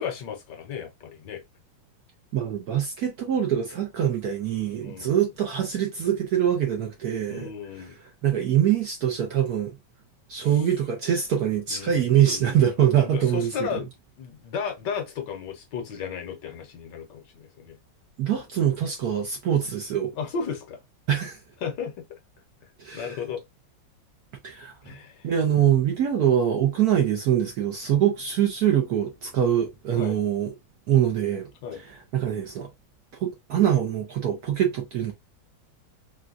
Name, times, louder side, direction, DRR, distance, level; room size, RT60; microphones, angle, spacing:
voice 1, 0.0-1.4 4.8-5.2 7.3-8.0 10.4-10.5 11.7-12.6 13.0-13.9 14.2-17.8 20.2-20.8 21.6-22.2 22.6-23.4 24.8-25.3 29.9-30.2 31.6-31.8, left 6 dB, 65° left, 1.3 m, -34 dB
voice 2, 2.3-7.5 8.2-9.8 10.3-13.8 18.2-20.1 21.1-21.4 22.8-23.2 24.4-24.9 25.2-30.5 30.9-31.5 31.8-32.7 33.2-35.1, right 10 dB, 65° right, 1.0 m, -24 dB
3.9 x 2.2 x 2.4 m
omnidirectional pair, 2.2 m